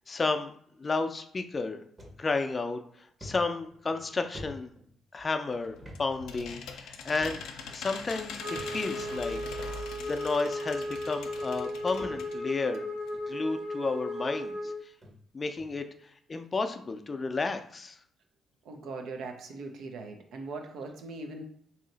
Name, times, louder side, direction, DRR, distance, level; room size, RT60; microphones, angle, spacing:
voice 1, 0.1-0.5 0.8-1.9 2.2-4.7 5.1-7.4 7.7-12.8 13.3-14.9 15.3-18.0, left 3 dB, 30° left, 7 dB, 0.4 m, -32 dB
sound 1, 2.0-2.2 2.6-2.7 3.2-5.2 5.8-6.0 6.3-6.4 7.2-7.7 8.6-9.1 10.0-10.1 11.0-11.1 11.4-12.6 13.0-13.3 14.1-14.2 14.6-14.7 15.0-15.1 15.6-15.8, equal, 30° right, 1.1 m, -47 dB
sound 2, 5.5-12.4 12.7-12.8 13.1-13.2, left 6 dB, 85° left, 0.5 m, -43 dB
Wind instrument woodwind instrument, 8.4-14.8, left 1 dB, 50° right, 1.4 m, -36 dB
voice 2, 18.6-21.4, right 3 dB, 75° right, 3 dB, 0.7 m, -40 dB
3.1 x 2.8 x 3.9 m, 0.64 s
cardioid pair, 90°, 0 cm